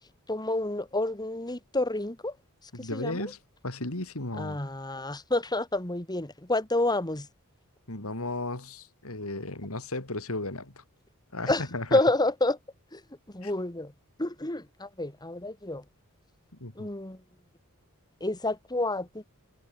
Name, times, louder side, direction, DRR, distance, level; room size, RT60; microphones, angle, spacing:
voice 1, 0.3-2.4 2.8-3.3 4.4-7.3 11.5-11.6 11.9-12.6 12.9-13.0 13.3-13.9 14.2-15.8 16.8-17.2 18.2-19.2, left 2 dB, 20° left, 2.2 m, -29 dB
voice 2, 2.7-3.4 3.6-4.6 7.9-10.8 11.3-12.0 13.4-13.5 16.6-16.9, left 2 dB, 70° left, 3.2 m, -35 dB
head